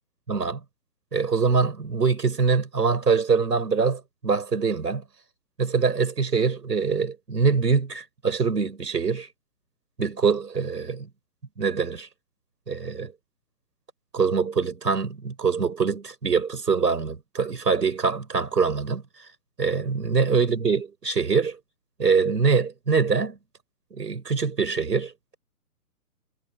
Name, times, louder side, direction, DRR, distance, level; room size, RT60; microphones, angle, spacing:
voice 1, 0.3-0.6 1.1-5.0 5.6-9.3 10.0-11.1 11.6-12.1 12.7-13.1 14.1-19.0 19.6-21.6 22.0-23.4 23.9-25.4, right 5 dB, 85° right, 6.4 m, -24 dB
hypercardioid pair, 155°, 48 cm